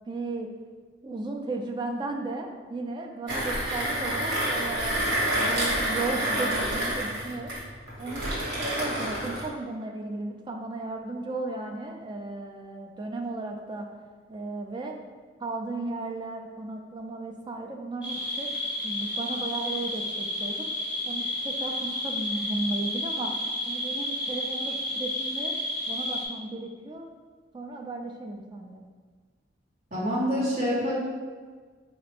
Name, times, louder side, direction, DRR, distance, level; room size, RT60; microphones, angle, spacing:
voice 1, 0.1-0.5 1.0-5.0 5.3-7.5 8.0-13.9 14.3-15.0 15.4-18.5 18.8-20.7 21.0-23.3 23.7-25.5 25.9-27.1 27.5-28.8, right 2 dB, 25° right, 1 dB, 0.3 m, -35 dB
Mechanisms, 3.3-9.5, right 1 dB, 90° right, 1.4 m, -28 dB
sound 1, 18.0-26.3, left 1 dB, 5° right, 0.7 m, -31 dB
voice 2, 29.9-31.0, equal, 45° right, -8 dB, 1.3 m, -26 dB
3.7 x 2.4 x 3.4 m, 1.5 s
head